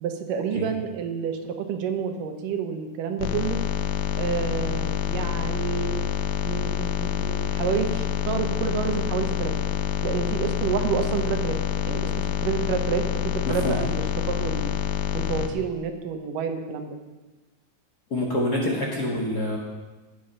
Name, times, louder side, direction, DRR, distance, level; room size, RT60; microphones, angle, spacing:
voice 1, 0.0-3.6 4.2-6.1 6.4-9.5 10.0-11.6 11.9-14.7 15.1-17.0, right 7 dB, 80° right, 6 dB, 2.7 m, -29 dB
sound 1, 3.2-15.5, left 10 dB, 85° left, 2.3 m, -27 dB
voice 2, 13.4-13.8 18.1-19.6, left 1 dB, 40° left, -2 dB, 1.5 m, -26 dB
16.5 x 7.4 x 5.5 m, 1.2 s
omnidirectional pair, 3.7 m